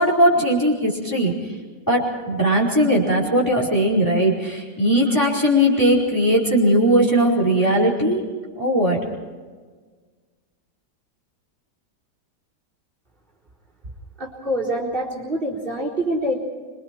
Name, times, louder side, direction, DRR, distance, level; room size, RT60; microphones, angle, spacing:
voice 1, 0.0-1.3 1.9-8.2 8.6-9.0, equal, 10° left, -4 dB, 4.7 m, -19 dB
voice 2, 14.2-16.4, right 1 dB, 30° right, -1 dB, 4.3 m, -25 dB
26.5 x 24.5 x 4.6 m, 1.5 s
omnidirectional pair, 1.9 m